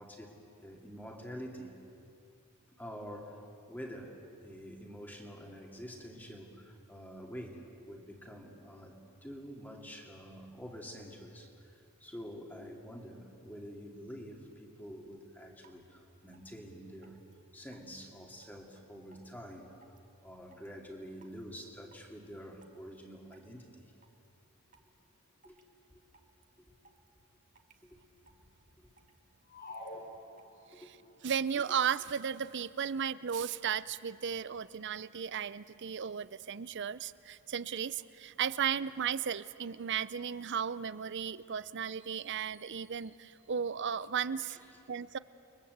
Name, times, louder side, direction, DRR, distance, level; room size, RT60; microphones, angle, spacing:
voice 1, 0.0-1.8 2.7-3.4 3.7-11.7 12.0-17.2 17.5-19.7 20.2-23.9 25.4-25.6 25.9-26.0 27.8-28.0 28.8-28.9 30.7-30.9 44.5-44.8, equal, 10° left, 1 dB, 2.4 m, -47 dB
sound 1, 15.1-15.2 15.6-15.8 16.3-16.5 17.0-17.3 17.7-18.0 18.4-18.6 19.1-19.3 19.8-20.1 20.5-20.7 21.2-21.4 21.9-22.1 22.6-23.0 23.3-23.5 23.9-24.3 24.7-24.9 25.4-25.8 26.1-26.4 26.8-27.1 27.6-27.8 28.3-28.4 28.7-29.2 29.7-29.9 30.4-30.5, right 4 dB, 35° right, 1.7 m, -62 dB
sound 2, 29.5-31.0, left 1 dB, 45° left, 3.4 m, -46 dB
voice 2, 31.2-44.6 44.9-45.2, right 7 dB, 55° right, 17 dB, 0.6 m, -35 dB
30.0 x 22.5 x 8.1 m, 2.5 s
head